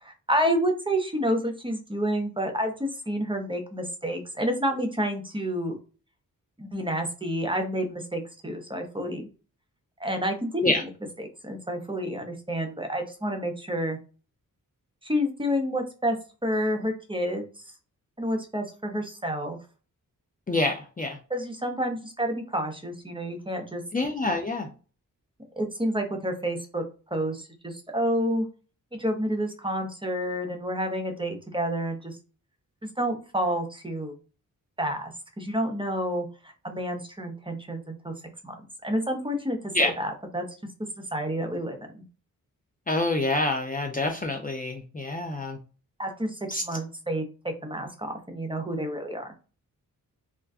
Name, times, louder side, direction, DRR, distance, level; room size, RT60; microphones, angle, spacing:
voice 1, 0.0-5.7 6.6-9.2 10.0-10.7 11.2-14.0 15.0-16.2 16.4-17.4 18.2-19.6 21.3-23.8 25.6-26.8 27.1-28.5 28.9-32.2 33.0-34.1 34.8-35.1 35.4-36.3 36.6-38.1 38.4-38.5 38.8-40.4 41.1-42.0 46.0-47.2 47.6-49.3, equal, 15° right, 4 dB, 0.7 m, -29 dB
voice 2, 20.5-21.2 23.9-24.7 39.7-39.9 42.9-45.6 46.5-46.6, left 2 dB, 25° left, 3 dB, 0.5 m, -26 dB
2.4 x 2.2 x 3.5 m, 0.36 s
cardioid pair, 70°, 34 cm